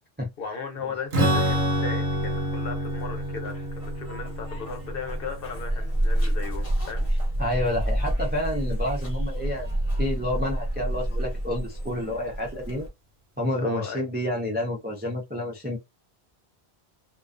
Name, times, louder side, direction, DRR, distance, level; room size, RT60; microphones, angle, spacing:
voice 1, 0.4-7.1 13.6-14.1, left 5 dB, 65° left, 0.9 m, -36 dB
Strum, 1.1-6.7, equal, 75° right, 0.9 m, -28 dB
Zipper (clothing), 1.2-12.9, right 1 dB, 35° left, 0.8 m, -29 dB
voice 2, 7.4-9.7 10.0-12.9 13.4-15.8, left 1 dB, 15° right, 0.4 m, -29 dB
2.4 x 2.2 x 2.4 m
omnidirectional pair, 1.1 m